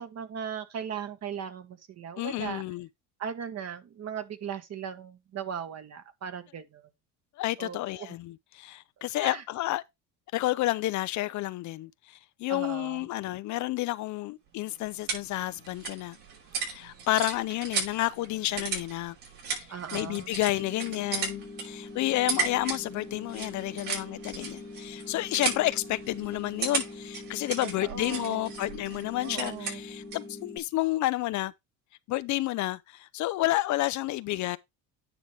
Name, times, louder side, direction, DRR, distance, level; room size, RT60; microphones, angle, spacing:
voice 1, 0.0-2.6 3.2-6.9 7.6-8.2 9.2-9.4 12.5-13.1 19.7-20.3 27.8-28.5 29.2-29.8, right 8 dB, 40° right, 1.4 m, -38 dB
voice 2, 2.2-2.9 7.4-9.8 10.3-16.2 16.6-19.1 19.5-31.5 32.1-34.6, left 17 dB, 50° left, 0.5 m, -30 dB
sound 1, 14.5-30.3, right 5 dB, 70° right, 6.0 m, -36 dB
sound 2, 20.6-30.6, left 3 dB, 10° left, 1.2 m, -44 dB
9.9 x 5.6 x 3.3 m
supercardioid pair, 105°, 39 cm